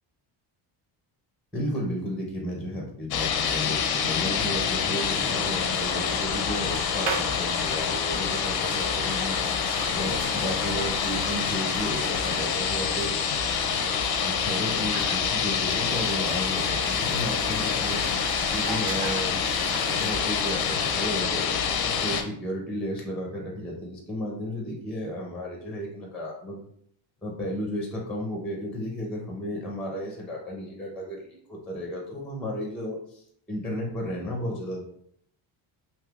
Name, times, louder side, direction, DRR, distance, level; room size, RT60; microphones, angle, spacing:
voice 1, 1.5-9.4 9.9-13.1 14.2-18.0 18.5-19.4 20.0-26.6 27.2-33.2 33.5-34.9, equal, ahead, 0 dB, 0.6 m, -33 dB
sound 1, 3.1-22.2, left 7 dB, 50° left, 0.5 m, -27 dB
sound 2, 4.9-21.2, right 5 dB, 65° right, 0.6 m, -39 dB
3.3 x 2.8 x 2.3 m, 0.66 s
cardioid pair, 115°, 49 cm